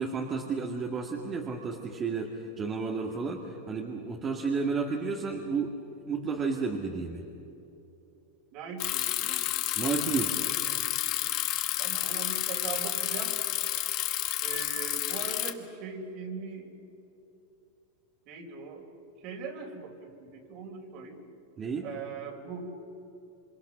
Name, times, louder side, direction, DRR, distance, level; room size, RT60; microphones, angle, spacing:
voice 1, 0.0-5.7 6.1-7.2 9.8-10.4 21.6-21.9, right 4 dB, 25° right, 0 dB, 2.2 m, -32 dB
voice 2, 8.5-9.5 11.8-13.4 14.4-16.7 18.3-18.9 19.2-21.2 21.8-22.6, right 5 dB, 50° right, 3 dB, 4.4 m, -40 dB
Bicycle, 8.8-15.5, left 15 dB, 50° left, 1.5 m, -30 dB
27.5 x 25.5 x 6.3 m, 2.9 s
supercardioid pair, 130°, 0 cm